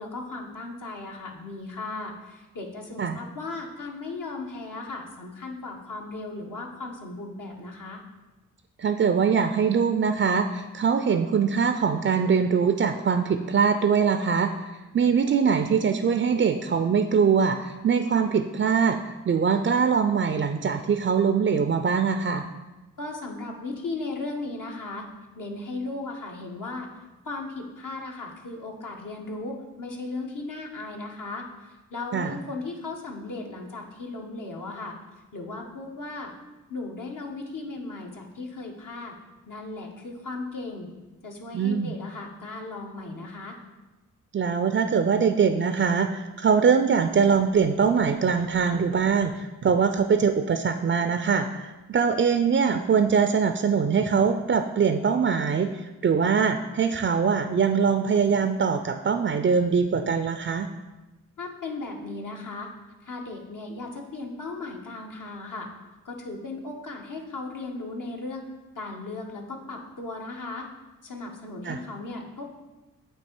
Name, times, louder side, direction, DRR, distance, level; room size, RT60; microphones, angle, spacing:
voice 1, 0.0-8.0 23.0-25.1 25.3-26.9 27.2-35.0 35.3-36.3 36.7-39.1 39.5-40.9 41.2-43.6 61.4-62.7 63.0-65.7 66.0-68.5 68.7-70.7 71.0-72.5, left 3 dB, 65° left, 1 dB, 1.2 m, -36 dB
voice 2, 8.8-14.5 14.9-22.4 32.1-32.3 41.5-41.9 44.3-60.7 71.6-71.8, right 6 dB, 35° right, 7 dB, 0.4 m, -23 dB
8.5 x 2.8 x 4.4 m, 1.1 s
cardioid pair, 40°, 35 cm